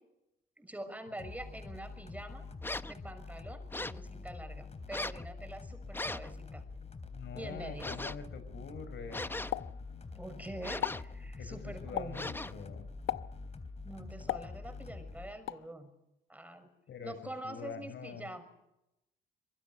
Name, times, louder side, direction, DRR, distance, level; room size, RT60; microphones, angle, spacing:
voice 1, 0.6-2.5 2.8-6.6 7.3-7.9 10.1-12.4 13.8-15.9 16.3-16.7 17.0-18.4, right 1 dB, 5° right, 8 dB, 6.1 m, -45 dB
sound 1, 1.2-15.3, left 3 dB, 35° left, 3.7 m, -46 dB
sound 2, 2.6-3.0 3.7-4.1 4.9-5.3 5.9-6.3 7.8-8.3 9.1-9.7 10.6-11.2 12.1-12.7, left 2 dB, 10° left, 0.9 m, -39 dB
voice 2, 7.1-9.4 11.4-12.9 16.9-17.1 17.4-18.3, left 6 dB, 65° left, 11 dB, 4.9 m, -45 dB
Explosion, 9.5-10.4 10.7-11.1 12.0-12.3 13.1-13.5 14.3-15.0 15.5-15.7, left 13 dB, 85° left, 0.9 m, -37 dB
26.0 x 24.0 x 6.6 m, 0.88 s
cardioid pair, 90°, 20 cm